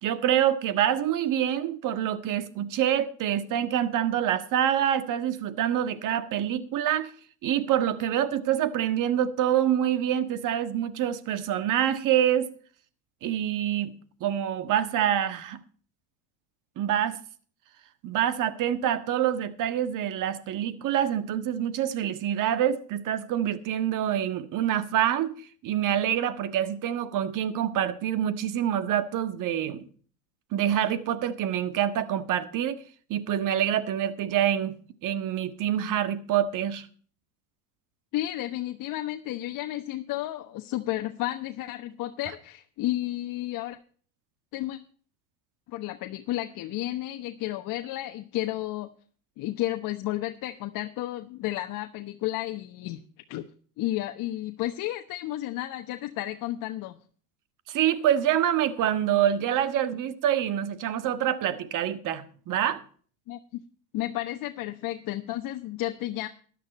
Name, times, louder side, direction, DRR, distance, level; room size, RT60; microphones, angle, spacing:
voice 1, 0.0-7.1 7.4-12.5 13.2-15.6 16.8-17.2 18.0-25.3 25.6-29.8 30.5-32.8 33.1-34.7 35.0-36.9 57.7-62.8, right 10 dB, 45° right, 1.6 m, -26 dB
voice 2, 38.1-43.8 44.5-44.8 45.7-48.9 49.4-53.0 53.3-53.5 53.8-57.0 63.3-63.6 63.9-66.3, left 15 dB, 50° left, 1.1 m, -32 dB
13.0 x 11.0 x 4.2 m
supercardioid pair, 105°, 43 cm